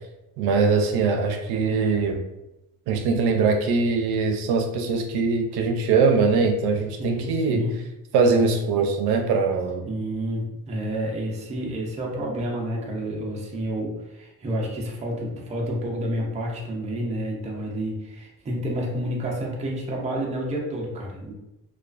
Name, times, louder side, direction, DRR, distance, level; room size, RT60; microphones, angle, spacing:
voice 1, 0.4-2.2 2.9-7.6 8.1-9.9, right 4 dB, 85° right, 4 dB, 0.5 m, -22 dB
voice 2, 7.0-7.7 9.9-21.3, equal, 20° right, -2 dB, 0.4 m, -29 dB
2.3 x 2.3 x 2.3 m, 0.93 s
cardioid pair, 145°, 38 cm